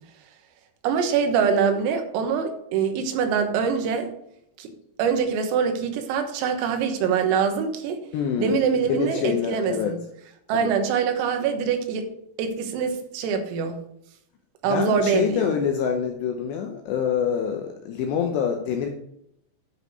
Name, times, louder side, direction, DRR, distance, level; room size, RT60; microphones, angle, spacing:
voice 1, 0.8-4.1 4.6-4.7 5.0-8.0 8.4-10.0 10.5-12.1 12.4-13.8 14.6-15.5, right 6 dB, 90° right, 6 dB, 4.0 m, -24 dB
voice 2, 8.1-9.9 10.5-10.7 14.6-18.9, left 7 dB, 80° left, 4 dB, 2.5 m, -26 dB
10.5 x 5.1 x 6.6 m, 0.75 s
omnidirectional pair, 5.9 m